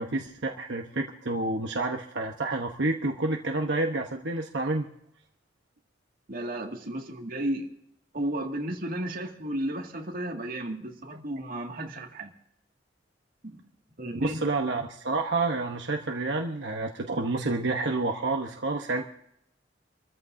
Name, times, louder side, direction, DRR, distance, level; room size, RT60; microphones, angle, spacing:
voice 1, 0.0-4.9 14.2-19.1, right 2 dB, 80° right, 2 dB, 1.0 m, -29 dB
voice 2, 6.3-7.7 8.1-12.3 13.4-13.6 14.0-14.4, right 1 dB, 55° right, 2 dB, 2.1 m, -33 dB
27.5 x 14.0 x 2.7 m, 0.77 s
head